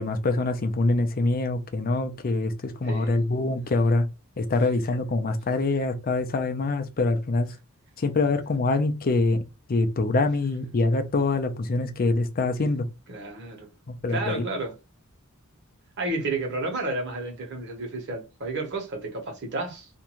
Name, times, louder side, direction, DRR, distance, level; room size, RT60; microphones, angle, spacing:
voice 1, 0.0-4.0 4.4-7.5 8.0-9.4 9.7-12.8 13.9-14.5, left 2 dB, 40° left, 0.5 m, -25 dB
voice 2, 2.8-3.2 13.1-13.7 14.1-14.8 16.0-19.9, right 2 dB, 55° right, 1.1 m, -31 dB
2.6 x 2.3 x 2.9 m
head